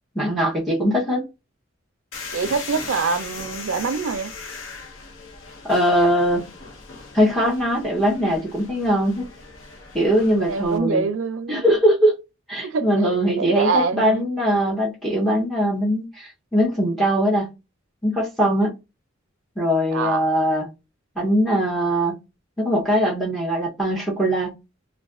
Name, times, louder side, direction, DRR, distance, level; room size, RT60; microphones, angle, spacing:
voice 1, 0.1-1.3 5.6-6.4 7.1-9.3 9.9-11.0 11.5-12.1 12.5-17.5 18.0-18.8 19.6-20.7 21.2-22.1 22.6-24.5, equal, ahead, 0.7 m, -21 dB
sound 1, 2.1-10.8, left 4 dB, 75° left, 0.8 m, -38 dB
voice 2, 2.3-4.3 10.5-11.6 12.6-14.3 19.9-20.2, right 4 dB, 80° right, 0.4 m, -25 dB
2.4 x 2.3 x 3.5 m
head